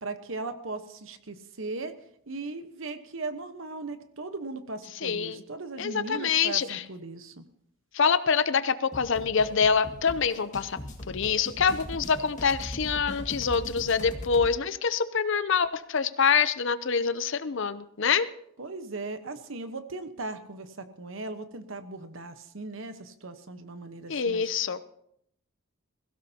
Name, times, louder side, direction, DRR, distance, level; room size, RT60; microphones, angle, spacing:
voice 1, 0.0-1.9 2.3-7.4 18.6-24.5, right 3 dB, 60° right, 9 dB, 1.1 m, -38 dB
voice 2, 5.0-5.4 5.8-6.8 7.9-10.8 11.1-18.3 24.1-24.8, left 6 dB, 55° left, 14 dB, 0.6 m, -25 dB
sound 1, 8.9-14.5, left 1 dB, 35° left, 1.9 m, -40 dB
22.0 x 16.0 x 2.9 m, 0.72 s
head